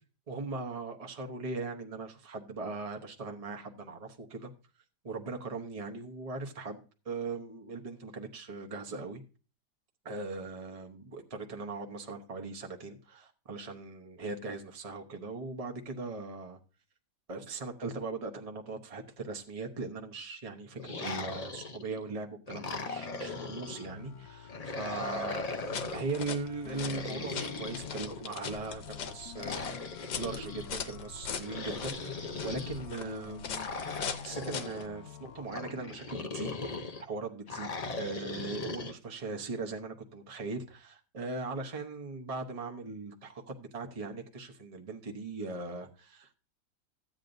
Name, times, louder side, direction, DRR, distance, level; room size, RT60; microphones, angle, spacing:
voice 1, 0.3-4.5 5.0-6.8 7.0-9.2 10.0-16.6 17.3-25.4 25.9-29.7 30.1-33.5 34.2-46.5, right 3 dB, 30° right, 0.8 m, -39 dB
sound 1, 20.8-22.0 22.5-23.9 24.5-26.1 26.7-28.4 29.3-30.7 31.4-32.8 33.5-34.8 35.5-37.0 37.5-38.9, left 3 dB, 50° left, 0.4 m, -39 dB
sound 2, 22.7-35.5, left 10 dB, 70° left, 1.1 m, -49 dB
sound 3, 25.6-34.9, left 7 dB, 90° left, 1.5 m, -41 dB
14.5 x 8.7 x 2.6 m
omnidirectional pair, 1.8 m